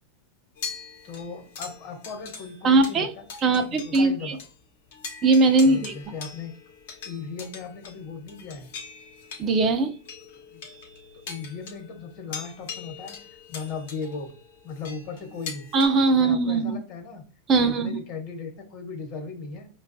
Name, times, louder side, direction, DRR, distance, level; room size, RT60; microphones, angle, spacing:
sound 1, 0.6-4.1 4.4-4.5 4.9-15.9, left 5 dB, 75° left, 0.9 m, -42 dB
voice 1, 1.0-3.2 3.5-4.4 5.6-6.5 7.0-8.7 10.5-10.6 11.3-13.2 13.5-14.3 14.6-15.7 16.1-17.2 17.5-19.7, left 5 dB, 50° left, 5 dB, 1.0 m, -37 dB
voice 2, 2.6-3.1 3.4-4.4 5.2-5.9 9.4-9.9 15.7-16.8 17.5-18.0, right 3 dB, 30° right, 6 dB, 0.4 m, -20 dB
5.1 x 2.3 x 2.5 m, 0.36 s
supercardioid pair, 140°, 0 cm